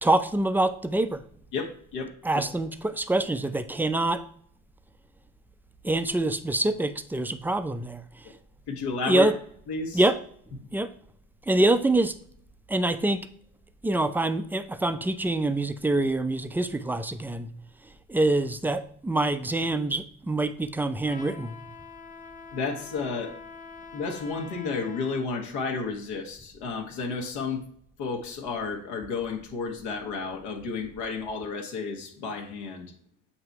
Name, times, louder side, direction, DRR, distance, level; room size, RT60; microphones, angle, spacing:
voice 1, 0.0-1.2 2.2-4.2 5.8-8.3 9.1-9.4 9.9-10.2 10.7-10.9 11.5-12.2 12.7-13.3 13.8-17.5 18.1-21.6, right 2 dB, 5° right, 0.4 m, -25 dB
voice 2, 1.5-2.4 8.7-9.3 9.7-10.0 22.5-23.3 23.9-27.6 28.0-32.9, left 4 dB, 70° left, 1.3 m, -32 dB
Trumpet, 21.0-25.3, left 5 dB, 20° left, 0.8 m, -45 dB
7.9 x 2.8 x 4.5 m
hypercardioid pair, 70°, 43 cm